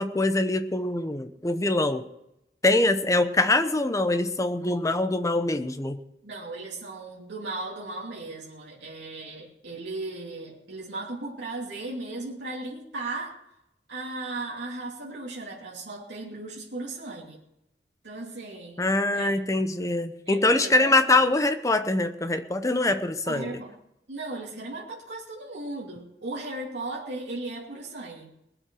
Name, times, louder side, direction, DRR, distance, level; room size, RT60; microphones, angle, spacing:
voice 1, 0.0-2.0 2.6-6.0 18.8-23.6, left 2 dB, 20° left, 8 dB, 0.9 m, -24 dB
voice 2, 6.2-13.4 13.9-17.4 18.0-18.8 19.1-19.3 20.3-20.9 23.3-23.7 24.1-28.3, right 2 dB, 80° right, -4 dB, 2.9 m, -36 dB
20.0 x 7.6 x 6.3 m, 0.84 s
head